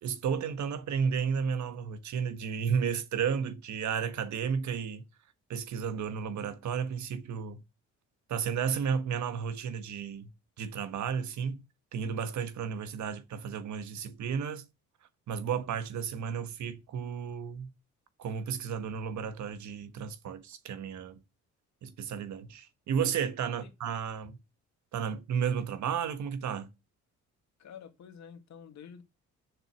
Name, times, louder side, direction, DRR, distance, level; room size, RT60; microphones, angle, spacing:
voice 1, 0.0-5.0 5.5-7.6 8.3-10.3 10.6-11.6 11.9-14.6 15.3-17.7 18.2-21.2 21.8-24.4 24.9-26.7, right 7 dB, 70° right, 1.4 m, -33 dB
voice 2, 27.6-29.0, left 7 dB, 65° left, 2.1 m, -49 dB
7.8 x 6.6 x 6.5 m
cardioid pair, 90°, 30 cm